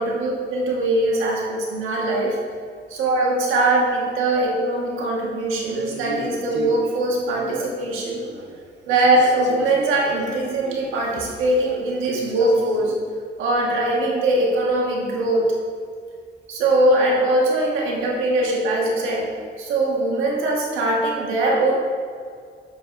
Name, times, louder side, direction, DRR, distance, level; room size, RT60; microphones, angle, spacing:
voice 1, 0.0-2.4 2.9-8.2 8.9-12.9 13.4-15.5 16.5-19.2 19.6-21.7, right 1 dB, 90° right, -2 dB, 1.5 m, -21 dB
Male speech man speaking, 5.6-8.6 8.9-13.0, right 2 dB, 65° right, 0.9 m, -36 dB
7.9 x 7.0 x 2.6 m, 2.1 s
cardioid pair, 90°, 20 cm